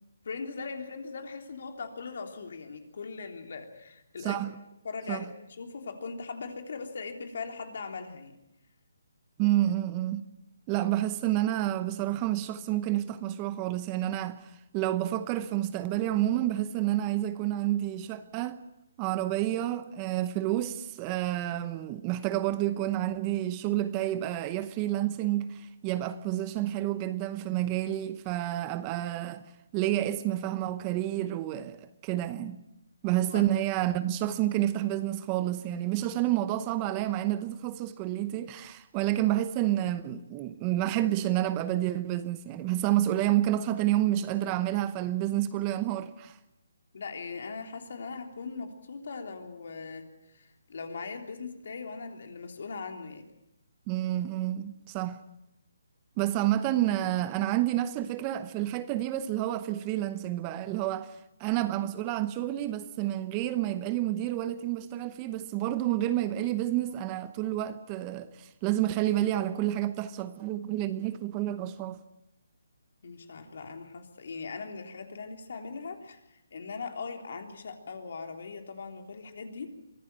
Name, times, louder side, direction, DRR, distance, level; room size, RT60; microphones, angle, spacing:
voice 1, 0.2-4.4 4.8-8.3 33.3-33.4 46.9-53.3 73.0-79.7, left 4 dB, 60° left, 3.4 m, -40 dB
voice 2, 4.2-4.5 5.1-5.2 9.4-10.3 10.7-18.6 19.0-29.4 29.7-32.6 33.0-46.4 53.9-55.2 56.2-72.0, right 13 dB, 20° right, 0.8 m, -29 dB
24.0 x 15.0 x 9.0 m
hypercardioid pair, 160°, 0 cm